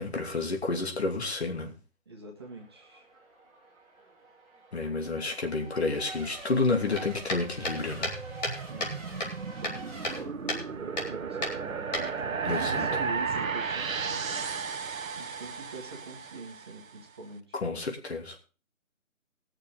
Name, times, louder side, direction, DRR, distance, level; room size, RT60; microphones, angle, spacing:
voice 1, 0.0-1.7 4.7-8.1 12.4-12.9 17.5-18.5, left 3 dB, 50° left, 2.7 m, -30 dB
voice 2, 2.0-3.1 8.7-9.1 9.6-14.6 15.1-17.6, right 3 dB, 20° right, 1.4 m, -44 dB
Race car auto racing / Accelerating revving vroom / Mechanisms, 2.4-10.2, right 2 dB, ahead, 1.4 m, -46 dB
sound 1, 6.9-9.0 9.2-10.2 10.5-10.6 11.0-11.1 11.4-12.5, left 1 dB, 30° left, 3.1 m, -33 dB
sound 2, 7.4-16.8, right 5 dB, 80° right, 1.0 m, -34 dB
20.0 x 6.7 x 3.9 m
figure-of-eight pair, 165°, 40 cm